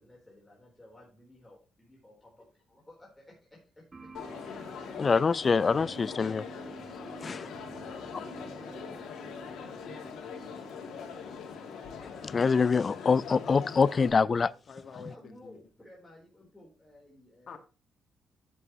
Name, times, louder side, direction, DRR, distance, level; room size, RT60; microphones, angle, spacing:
voice 1, 0.0-2.3 2.9-4.4 7.4-9.1 10.8-11.0 14.9-17.6, left 1 dB, 15° left, 4.0 m, -55 dB
sound 1, 3.9-13.4, right 3 dB, 25° right, 1.3 m, -54 dB
Crowd, 4.1-14.1, left 6 dB, 75° left, 2.6 m, -42 dB
voice 2, 5.0-6.4 7.2-7.5 12.0-14.5, left 5 dB, 35° left, 0.4 m, -25 dB
Wind instrument woodwind instrument, 5.8-11.2, right 4 dB, 45° right, 4.4 m, -51 dB
voice 3, 12.9-15.6 17.5-17.6, left 6 dB, 55° left, 1.8 m, -47 dB
10.5 x 8.3 x 3.1 m
cardioid pair, 90°, 0 cm